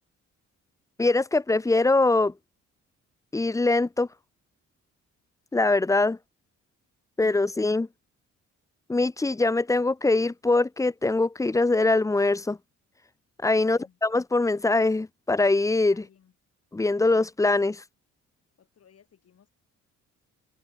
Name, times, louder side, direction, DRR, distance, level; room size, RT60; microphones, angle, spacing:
voice 1, 1.0-2.3 3.3-4.1 5.5-6.2 7.2-7.9 8.9-12.6 13.4-16.0 16.7-17.8, left 2 dB, 10° left, 0.6 m, -23 dB
voice 2, 13.6-14.0 15.9-16.3 18.6-19.5, left 8 dB, 55° left, 4.3 m, -57 dB
cardioid pair, 90°, 30 cm